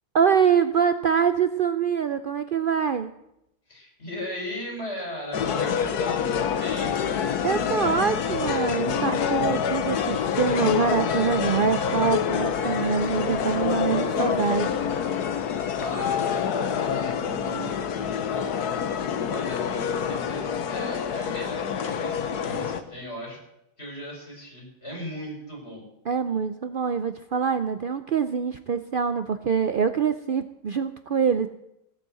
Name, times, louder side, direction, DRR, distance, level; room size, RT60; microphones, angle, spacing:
voice 1, 0.1-3.1 7.4-14.7 26.0-31.5, right 6 dB, 80° right, 10 dB, 0.4 m, -24 dB
voice 2, 3.7-7.0 15.7-18.6 19.0-23.4 23.8-25.9, equal, 40° left, -1 dB, 5.6 m, -37 dB
sound 1, 5.3-22.8, left 7 dB, 75° left, 1.5 m, -27 dB
16.5 x 9.5 x 7.7 m, 0.85 s
omnidirectional pair, 1.7 m